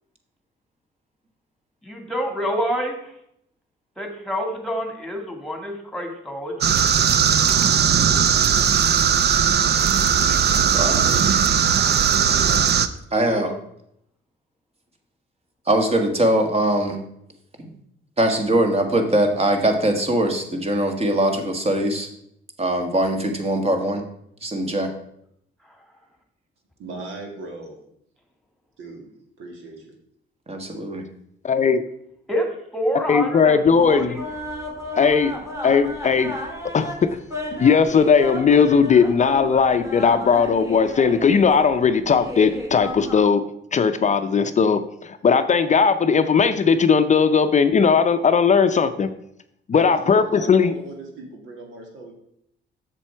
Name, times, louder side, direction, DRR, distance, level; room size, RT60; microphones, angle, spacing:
voice 1, 1.8-3.1 4.0-6.8 13.2-13.5 32.3-34.3, equal, ahead, 4 dB, 2.0 m, -27 dB
sound 1, 6.6-12.9, right 8 dB, 55° right, 0.6 m, -18 dB
voice 2, 10.7-11.0 13.1-13.5 15.7-17.0 17.6-17.7 18.2-22.1 22.6-24.0 24.4-24.9 30.5-31.0, right 1 dB, 30° right, 5 dB, 1.7 m, -21 dB
voice 3, 26.8-27.8 28.8-29.1 29.4-29.9 49.7-52.1, right 2 dB, 80° right, 1 dB, 2.2 m, -37 dB
voice 4, 31.4-31.8 33.1-34.2 34.9-35.3 35.6-36.4 36.7-37.1 37.6-43.4 43.7-49.1 49.7-50.7, left 6 dB, 35° left, 10 dB, 0.6 m, -18 dB
sound 2, 33.7-43.2, left 1 dB, 15° right, 2.1 m, -34 dB
7.4 x 6.9 x 4.5 m, 0.74 s
cardioid pair, 90°, 20 cm